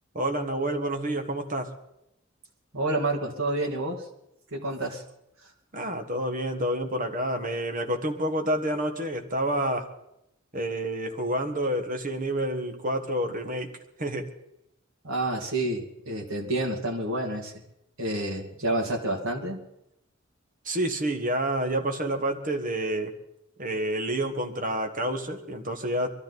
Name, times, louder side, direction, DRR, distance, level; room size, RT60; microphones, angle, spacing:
voice 1, 0.1-1.7 5.7-9.9 10.5-14.3 20.6-23.1 23.6-26.1, right 1 dB, 40° right, 5 dB, 1.7 m, -29 dB
voice 2, 2.7-4.1 4.5-5.0 15.0-17.5 18.0-19.6, right 2 dB, 90° right, -1 dB, 2.4 m, -29 dB
22.5 x 13.5 x 4.1 m, 0.82 s
head